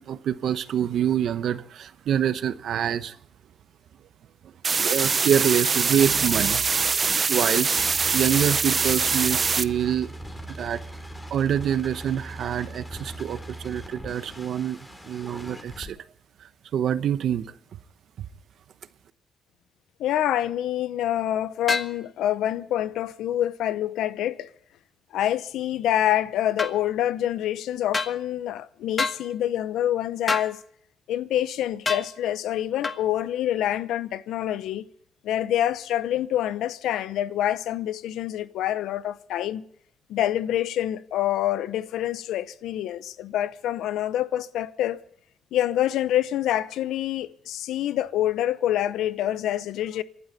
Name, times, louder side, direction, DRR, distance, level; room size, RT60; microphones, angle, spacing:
voice 1, 0.0-3.1 4.8-7.7 8.1-10.1 10.6-10.8 11.3-13.4 13.6-14.8 15.1-16.0 16.7-17.5, right 9 dB, 70° right, 0.9 m, -26 dB
sound 1, 4.6-9.6, right 5 dB, 35° right, 0.7 m, -23 dB
sound 2, 7.5-15.9, right 1 dB, 10° left, 3.6 m, -40 dB
voice 2, 20.0-24.5 25.1-30.6 31.1-34.8 35.2-39.6 40.1-45.0 45.5-50.0, left 12 dB, 85° left, 0.7 m, -26 dB
sound 3, 21.7-21.9 26.6-26.8 27.9-28.2 29.0-29.2 30.3-30.5 31.9-32.1 32.8-33.0, left 4 dB, 30° left, 1.3 m, -26 dB
27.5 x 11.5 x 4.1 m
cardioid pair, 90°, 0 cm